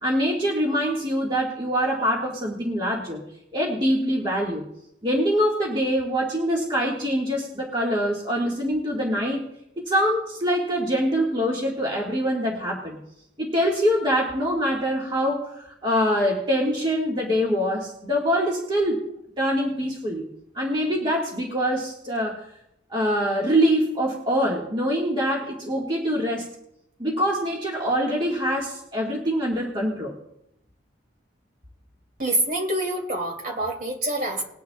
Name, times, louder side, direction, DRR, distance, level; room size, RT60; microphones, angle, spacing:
voice 1, 0.0-3.2 3.5-4.7 5.0-9.4 9.8-13.0 13.4-19.0 19.4-20.2 20.5-22.4 22.9-26.5 27.0-30.1, equal, 25° right, -3 dB, 1.7 m, -24 dB
voice 2, 32.2-34.4, right 1 dB, 45° right, 0 dB, 2.6 m, -26 dB
20.5 x 10.0 x 2.3 m, 0.80 s
head